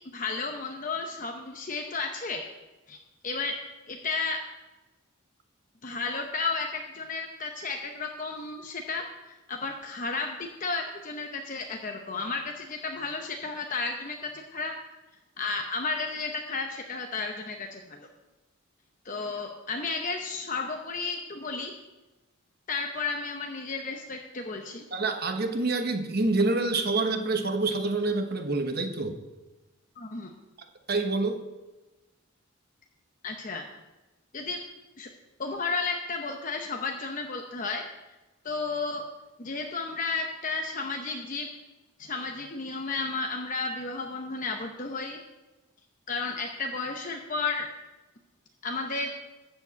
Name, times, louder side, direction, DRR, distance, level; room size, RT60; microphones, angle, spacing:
voice 1, 0.1-2.4 2.9-3.0 3.2-3.5 3.9-4.4 5.8-14.7 15.4-18.1 19.0-21.7 22.7-24.8 30.0-30.3 33.2-33.6 34.3-34.6 35.0-35.1 35.4-37.8 38.4-39.0 39.4-41.5 42.0-45.2 46.1-47.7 48.6-49.1, left 4 dB, 35° left, 3 dB, 0.8 m, -33 dB
voice 2, 24.9-29.2 30.9-31.4, right 3 dB, 45° right, 6 dB, 1.1 m, -27 dB
13.0 x 5.1 x 8.1 m, 1.1 s
head